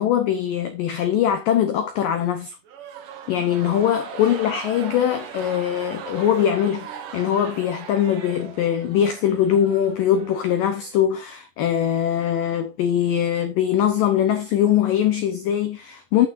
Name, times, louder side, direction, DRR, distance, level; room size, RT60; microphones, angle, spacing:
voice 1, 0.0-2.6 3.3-16.3, left 10 dB, 85° left, 1.9 m, -22 dB
sound 1, 2.6-11.1, right 7 dB, 60° right, 2.6 m, -39 dB
11.5 x 8.4 x 2.6 m
omnidirectional pair, 5.4 m